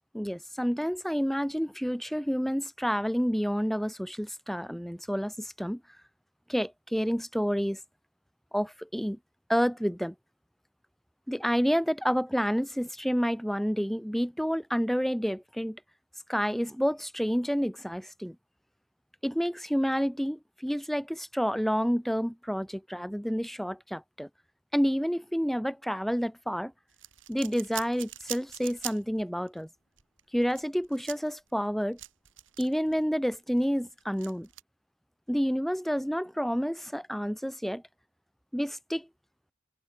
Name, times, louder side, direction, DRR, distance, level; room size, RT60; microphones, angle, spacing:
voice 1, 0.1-5.8 6.5-7.8 8.5-9.2 9.5-10.1 11.3-15.8 16.3-18.4 19.2-24.3 24.7-26.7 27.3-29.7 30.3-32.0 32.6-34.5 35.3-37.8 38.5-39.1, equal, ahead, 2.5 m, -29 dB
sound 1, 26.9-29.2 29.5-29.6 30.0-33.0 33.3-34.6, right 14 dB, 85° right, 3.3 m, -42 dB
head